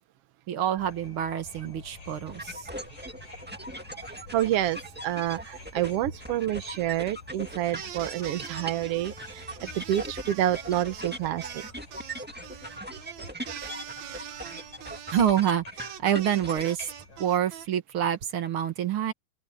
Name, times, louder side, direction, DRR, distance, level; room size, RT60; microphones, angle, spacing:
voice 1, 0.5-2.7 15.1-16.9 17.2-19.1, right 10 dB, 45° right, 2.1 m, -27 dB
sound 1, 0.8-17.3, left 3 dB, 75° left, 9.0 m, -50 dB
sound 2, 2.3-16.9, right 1 dB, 15° right, 0.3 m, -40 dB
voice 2, 4.3-9.5 9.7-11.6, right 13 dB, 85° right, 1.3 m, -28 dB
sound 3, 7.7-17.7, right 10 dB, 65° right, 2.3 m, -43 dB
open air
omnidirectional pair, 3.9 m